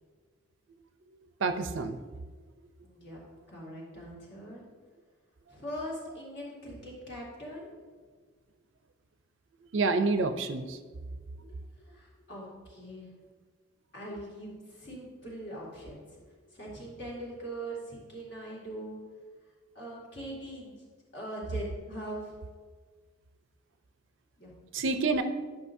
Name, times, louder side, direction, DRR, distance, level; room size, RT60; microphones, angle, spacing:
voice 1, 1.4-2.0 9.7-10.8 24.7-25.2, right 3 dB, 60° right, 9 dB, 0.5 m, -28 dB
voice 2, 2.8-3.2 3.5-4.6 5.5-7.7 11.3-11.5 11.8-13.1 13.9-16.0 16.5-19.0 19.7-20.7 21.1-22.4 24.4-24.5, right 1 dB, 55° left, -4 dB, 2.2 m, -41 dB
11.0 x 5.8 x 2.6 m, 1.5 s
head